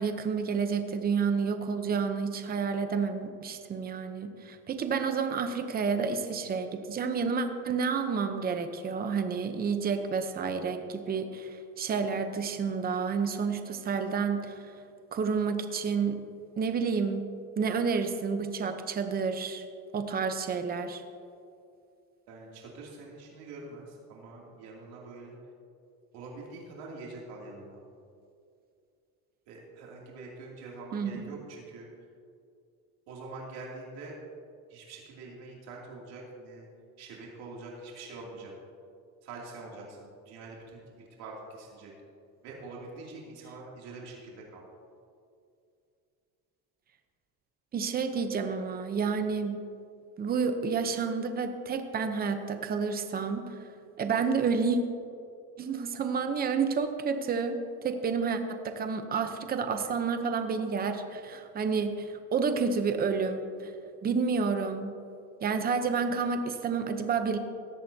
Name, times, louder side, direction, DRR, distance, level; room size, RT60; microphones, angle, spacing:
voice 1, 0.0-14.7 15.1-16.2 16.6-17.2 17.6-19.6 19.9-21.0 30.9-31.3 47.7-49.6 50.2-53.6 54.0-54.8 55.6-57.6 57.8-63.7 64.0-64.9 65.4-67.4, right 5 dB, 25° right, 7 dB, 0.8 m, -30 dB
voice 2, 22.3-25.3 26.1-27.8 29.5-31.9 33.1-34.2 34.7-36.7 37.0-38.5 39.2-40.8 41.2-41.9 42.4-44.6, right 3 dB, 80° right, -3 dB, 2.8 m, -45 dB
17.0 x 13.5 x 2.8 m, 2.5 s
cardioid pair, 160°, 37 cm